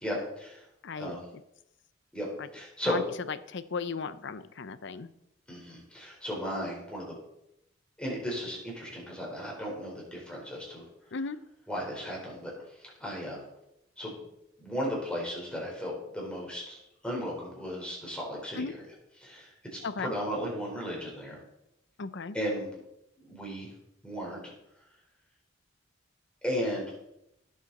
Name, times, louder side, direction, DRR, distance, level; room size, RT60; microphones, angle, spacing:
voice 1, 0.0-0.6 1.0-1.3 2.1-2.3 2.5-3.0 5.5-7.2 8.0-10.8 11.7-12.5 12.8-13.4 14.0-14.1 14.6-18.8 19.2-21.4 22.3-22.7 23.2-23.7 24.0-24.5 26.4-26.9, equal, 5° left, -3 dB, 4.3 m, -35 dB
voice 2, 0.8-1.2 2.4-2.5 2.8-3.0 3.3-5.1 11.1-11.4 18.6-18.7 19.8-20.1 22.0-22.3, left 4 dB, 65° left, 14 dB, 0.7 m, -35 dB
16.5 x 7.4 x 4.2 m, 0.83 s
head